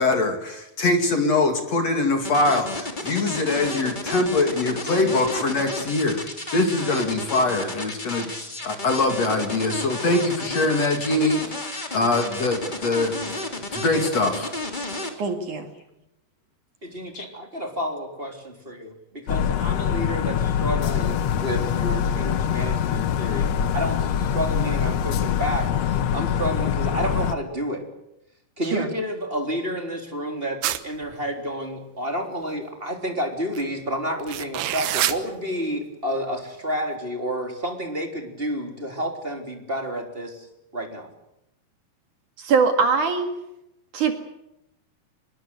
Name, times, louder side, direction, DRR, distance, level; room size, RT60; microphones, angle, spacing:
voice 1, 0.0-6.2 6.5-8.3 8.6-11.5 11.9-13.2 13.6-14.5 17.1-17.3, left 2 dB, 45° left, 5 dB, 3.2 m, -23 dB
sound 1, 2.2-15.1, left 2 dB, 15° left, 2.6 m, -32 dB
voice 2, 15.2-15.7 28.6-28.9 42.4-43.3 43.9-44.1, right 5 dB, 55° right, 6 dB, 3.3 m, -22 dB
voice 3, 16.8-27.8 28.6-40.5 40.7-41.1, equal, 15° right, 3 dB, 3.4 m, -30 dB
sound 2, 19.3-27.4, left 8 dB, 85° left, 1.5 m, -24 dB
sound 3, 30.6-31.1 33.5-33.6 34.2-35.2, right 13 dB, 85° right, 3.2 m, -25 dB
25.0 x 21.5 x 8.1 m, 0.86 s
omnidirectional pair, 4.5 m